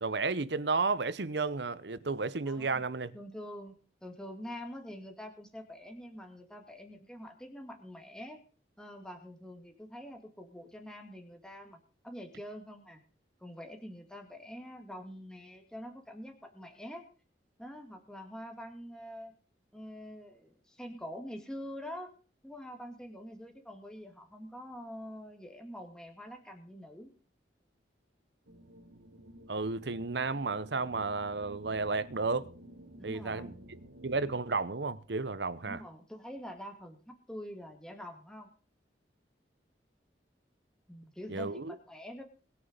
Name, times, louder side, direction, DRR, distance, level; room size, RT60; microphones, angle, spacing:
voice 1, 0.0-3.2 29.5-32.5 33.0-35.8 41.3-41.8, right 4 dB, 70° right, 0.9 m, -33 dB
voice 2, 2.5-2.8 3.1-3.8 4.0-8.4 8.8-13.0 13.4-17.1 17.6-19.3 19.7-22.1 22.4-27.1 33.0-33.7 35.6-38.5 40.9-42.2, equal, 5° left, 2.2 m, -45 dB
sound 1, 28.5-34.4, right 1 dB, 90° right, 1.6 m, -52 dB
21.5 x 7.1 x 5.2 m
head